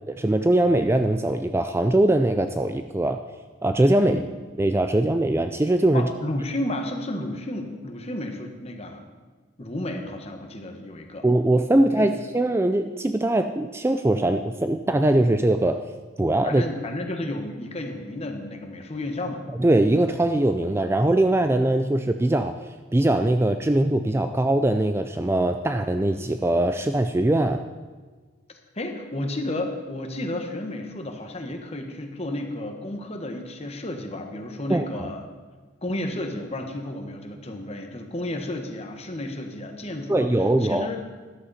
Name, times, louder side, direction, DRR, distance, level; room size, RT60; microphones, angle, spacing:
voice 1, 0.1-3.2 3.6-4.2 4.6-6.1 11.2-15.8 16.2-16.6 19.6-22.5 22.9-27.6 34.7-35.1 40.1-40.9, right 1 dB, 10° right, 8 dB, 0.3 m, -21 dB
voice 2, 4.0-4.3 5.9-9.0 9.6-11.2 12.0-12.1 16.2-19.4 28.7-35.2 35.8-40.3 40.6-41.0, left 1 dB, 30° left, 4 dB, 1.3 m, -32 dB
13.5 x 11.5 x 4.2 m, 1.4 s
head